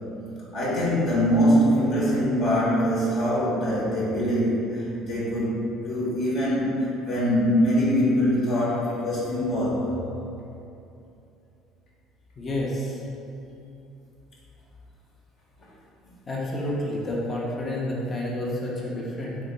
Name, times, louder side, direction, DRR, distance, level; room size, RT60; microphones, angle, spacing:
voice 1, 0.5-9.9, equal, 55° left, -7 dB, 1.0 m, -23 dB
voice 2, 12.4-13.0 16.3-19.4, left 1 dB, 30° left, -4 dB, 0.7 m, -29 dB
3.4 x 2.7 x 3.9 m, 2.7 s
figure-of-eight pair, 55°, 0 cm